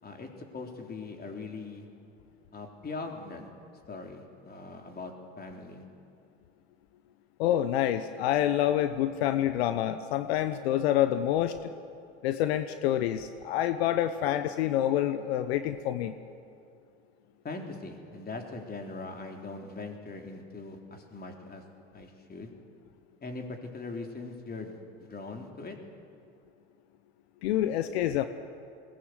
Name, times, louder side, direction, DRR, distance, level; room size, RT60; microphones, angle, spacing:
voice 1, 0.0-1.9 2.5-3.5 3.9-5.8 17.4-21.6 21.9-22.5 23.2-25.8, left 3 dB, 30° left, 3 dB, 3.8 m, -41 dB
voice 2, 7.4-11.7 12.2-16.1 27.4-28.2, left 12 dB, 80° left, 11 dB, 0.9 m, -27 dB
21.5 x 19.0 x 8.1 m, 2.4 s
hypercardioid pair, 75°, 31 cm